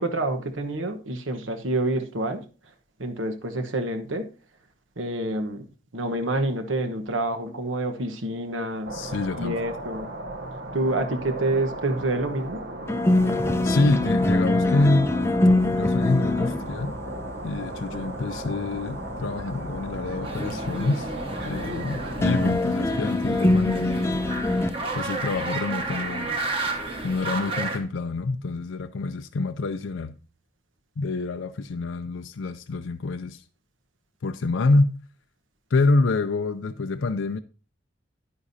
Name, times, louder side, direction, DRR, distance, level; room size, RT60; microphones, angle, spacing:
voice 1, 0.0-2.4 3.0-4.3 5.0-5.7 5.9-8.9 9.3-10.1 10.7-12.6, right 2 dB, 85° right, 1.2 m, -27 dB
sound 1, 8.8-22.5, right 1 dB, 65° right, 1.0 m, -36 dB
voice 2, 8.9-9.6 13.6-15.1 15.7-16.9 17.4-21.1 21.5-24.0 24.9-26.3 27.0-30.2 31.0-33.4 34.2-34.9 35.7-37.4, left 3 dB, 80° left, 0.5 m, -26 dB
sound 2, 12.9-24.7, left 2 dB, 15° left, 0.5 m, -25 dB
sound 3, 20.2-27.8, right 2 dB, 30° right, 1.4 m, -32 dB
10.0 x 9.7 x 2.7 m
head